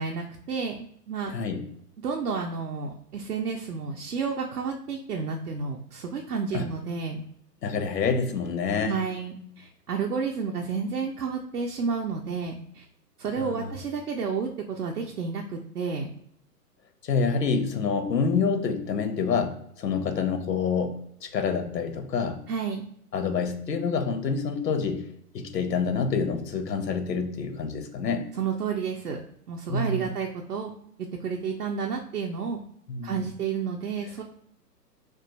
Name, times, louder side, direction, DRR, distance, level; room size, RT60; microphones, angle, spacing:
voice 1, 0.0-1.3 2.0-7.2 8.8-12.8 13.2-16.1 22.5-22.8 28.4-29.2 29.5-30.7 31.2-32.6 33.0-34.2, right 5 dB, 70° right, 1 dB, 0.6 m, -31 dB
voice 2, 1.3-1.6 6.5-6.7 7.6-9.0 13.4-13.7 17.0-22.4 23.1-25.1 25.3-28.3 29.7-30.1 32.9-33.2, left 5 dB, 75° left, 7 dB, 0.6 m, -27 dB
2.4 x 2.2 x 3.9 m, 0.69 s
figure-of-eight pair, 125°, 49 cm